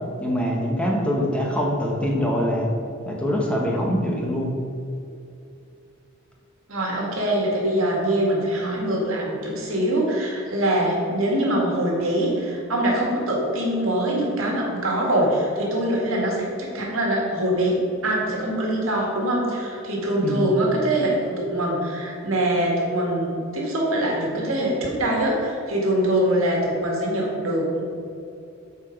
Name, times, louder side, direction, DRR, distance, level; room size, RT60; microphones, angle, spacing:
voice 1, 0.2-2.7 3.1-4.6 20.2-20.5, equal, 5° left, -2 dB, 1.0 m, -24 dB
voice 2, 6.7-27.8, right 1 dB, 70° right, -2 dB, 1.9 m, -23 dB
7.9 x 4.8 x 5.2 m, 2.6 s
head